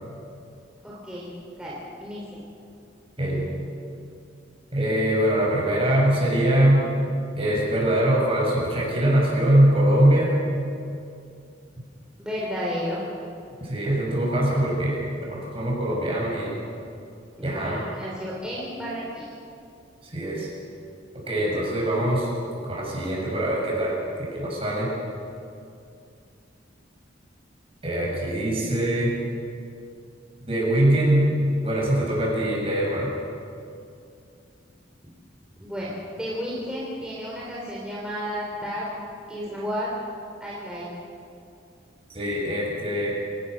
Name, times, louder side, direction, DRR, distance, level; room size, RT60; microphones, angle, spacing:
voice 1, 0.8-1.3 1.6-2.4 12.2-13.0 17.4-19.3 35.6-38.9 39.3-39.9 40.4-40.9, equal, 5° right, -6 dB, 3.6 m, -32 dB
voice 2, 3.2-3.5 4.7-6.9 7.4-10.4 13.6-16.5 17.4-17.9 20.0-20.5 21.3-22.3 22.6-24.9 27.8-29.2 30.5-31.4 31.6-33.1 42.1-43.2, right 1 dB, 30° right, -3 dB, 7.2 m, -22 dB
27.5 x 18.0 x 6.6 m, 2.5 s
head